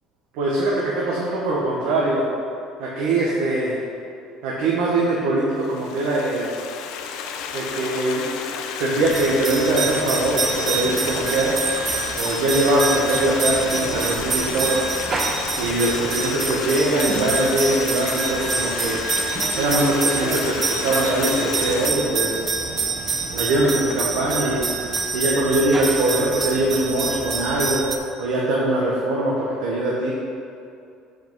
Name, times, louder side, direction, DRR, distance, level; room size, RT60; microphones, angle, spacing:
voice 1, 0.3-2.2 2.8-3.8 4.4-6.5 7.5-8.2 8.8-11.5 12.2-14.8 15.6-19.0 19.6-22.4 23.3-24.6 25.1-27.8 28.2-30.1, right 2 dB, 75° right, -4 dB, 1.1 m, -22 dB
Stream, 5.6-21.9, left 6 dB, 65° left, 0.6 m, -31 dB
sound 1, 9.0-28.0, right 4 dB, 25° right, 0.5 m, -26 dB
7.8 x 5.0 x 4.6 m, 2.5 s
cardioid pair, 170°, 0 cm